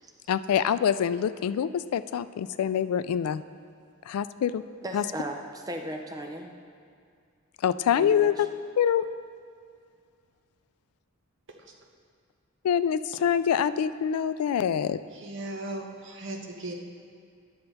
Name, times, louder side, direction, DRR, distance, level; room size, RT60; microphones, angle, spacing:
voice 1, 0.3-3.4 4.1-4.6 4.9-5.0 7.6-8.5 8.8-9.0 12.6-15.0, left 8 dB, 80° left, 16 dB, 0.3 m, -25 dB
voice 2, 4.8-6.5 7.9-8.3, right 1 dB, 15° right, 3 dB, 0.5 m, -36 dB
voice 3, 15.1-16.7, right 2 dB, 55° right, 2 dB, 0.9 m, -37 dB
9.8 x 6.6 x 4.1 m, 2.2 s
head